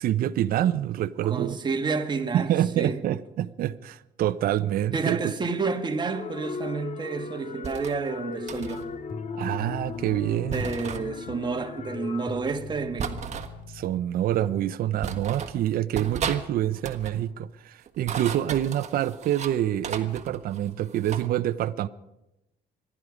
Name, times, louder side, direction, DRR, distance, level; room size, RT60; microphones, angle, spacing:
voice 1, 0.0-1.6 2.3-5.2 9.4-10.7 13.7-21.9, right 12 dB, 60° right, 0.6 m, -26 dB
voice 2, 1.2-3.0 4.9-8.9 10.5-13.2, right 4 dB, 25° right, 1.5 m, -30 dB
sound 1, 6.1-12.3, left 6 dB, 40° left, 0.8 m, -38 dB
sound 2, 7.6-8.0 8.5-8.8 10.5-11.0 13.0-13.5 14.4-14.5 15.0-15.6 15.9-16.4 16.7-17.2 17.9-19.6 19.8-21.3, right 6 dB, 40° right, 1.4 m, -35 dB
sound 3, 8.6-13.9, left 3 dB, 60° left, 1.9 m, -42 dB
26.0 x 11.0 x 5.0 m
cardioid pair, 110°, 17 cm